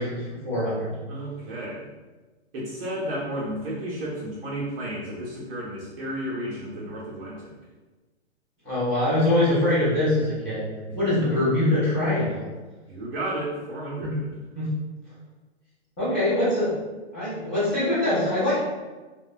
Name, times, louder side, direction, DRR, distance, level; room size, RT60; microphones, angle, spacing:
voice 1, 0.0-0.9 8.6-10.6 11.0-12.5 14.0-14.1 14.5-14.7 16.0-16.8 17.1-18.6, left 1 dB, 5° left, -21 dB, 0.3 m, -23 dB
voice 2, 1.1-1.9 2.5-7.5 12.9-14.3, right 1 dB, 55° right, -6 dB, 0.7 m, -32 dB
2.9 x 2.1 x 2.3 m, 1.2 s
hypercardioid pair, 160°, 35 cm